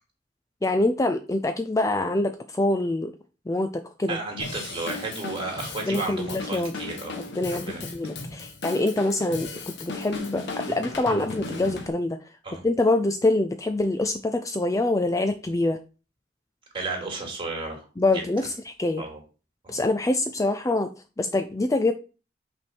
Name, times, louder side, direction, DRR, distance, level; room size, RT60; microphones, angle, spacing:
voice 1, 0.6-3.1 3.5-3.7 4.0-4.2 5.9-6.7 7.4-9.5 9.8-12.2 12.6-15.8 18.0-19.0 19.7-20.9 21.2-21.9, left 2 dB, 15° left, 8 dB, 0.4 m, -25 dB
voice 2, 4.1-7.2 7.5-7.9 12.4-12.6 16.7-17.8 18.1-18.2 19.0-19.2 19.6-19.8, right 3 dB, 25° right, 0 dB, 2.8 m, -33 dB
Drum kit / Drum, 4.4-11.9, left 3 dB, 60° left, 1.3 m, -36 dB
5.8 x 4.5 x 6.2 m, 0.34 s
head